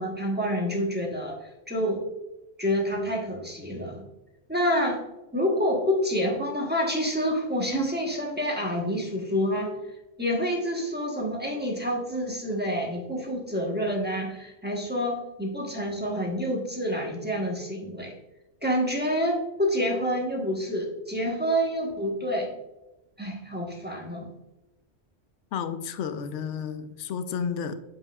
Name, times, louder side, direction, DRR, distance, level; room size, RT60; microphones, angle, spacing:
voice 1, 0.0-2.0 2.6-4.0 4.5-5.0 5.3-9.7 10.2-18.1 18.6-22.5 23.2-24.3, equal, 10° right, -1 dB, 1.1 m, -28 dB
voice 2, 25.5-27.8, left 7 dB, 75° left, 10 dB, 0.9 m, -31 dB
8.0 x 5.7 x 2.4 m, 0.99 s
omnidirectional pair, 1.3 m